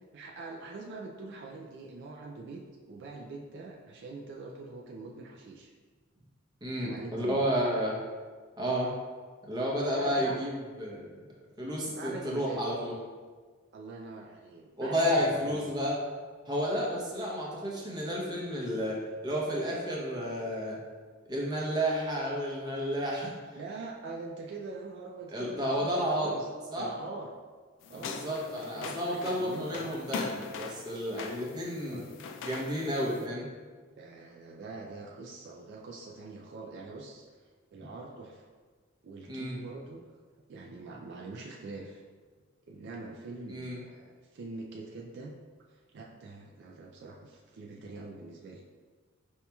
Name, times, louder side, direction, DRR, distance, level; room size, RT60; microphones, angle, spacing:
voice 1, 0.1-5.7 6.8-7.4 9.9-10.4 11.9-12.6 13.7-15.8 23.5-26.5 26.8-27.4 27.9-30.0 31.6-32.3 33.9-37.2 37.7-38.5 39.0-40.0 40.5-42.0 42.7-45.3 45.7-48.6, right 3 dB, 60° right, -1 dB, 0.4 m, -44 dB
voice 2, 6.6-8.0 8.6-8.9 9.4-11.1 11.6-12.9 14.8-16.0 16.5-20.8 21.3-23.3 25.3-26.3 26.7-26.9 27.9-32.0 32.4-33.5 39.3-39.6 43.5-43.8, equal, 20° right, -4 dB, 0.7 m, -31 dB
sound 1, 27.8-33.3, left 5 dB, 65° left, 0.3 m, -41 dB
5.3 x 2.9 x 2.3 m, 1.5 s
head